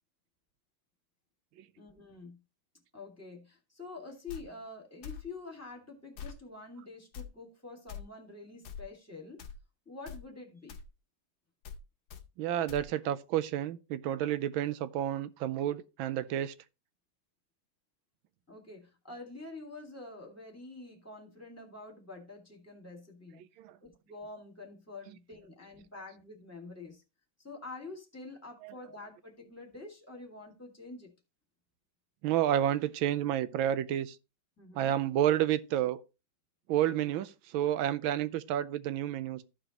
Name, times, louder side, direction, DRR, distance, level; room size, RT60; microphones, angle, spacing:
voice 1, 1.8-2.4 2.9-9.4 9.9-10.8 18.5-23.4 23.8-27.0 27.4-31.1 34.6-35.0, left 3 dB, 10° left, 1.8 m, -47 dB
sound 1, 4.3-4.4 5.0-5.2 6.2-6.4 7.1-7.3 7.9-8.0 8.6-8.8 9.4-9.6 10.1-10.2 10.7-10.9 11.6-11.8 12.1-12.2 12.7-12.8, left 7 dB, 75° left, 1.5 m, -43 dB
voice 2, 12.4-16.5 23.6-23.8 28.6-28.7 32.2-34.2 34.7-36.0 36.7-39.4, right 11 dB, 90° right, 1.4 m, -30 dB
14.0 x 4.9 x 2.9 m
omnidirectional pair, 2.1 m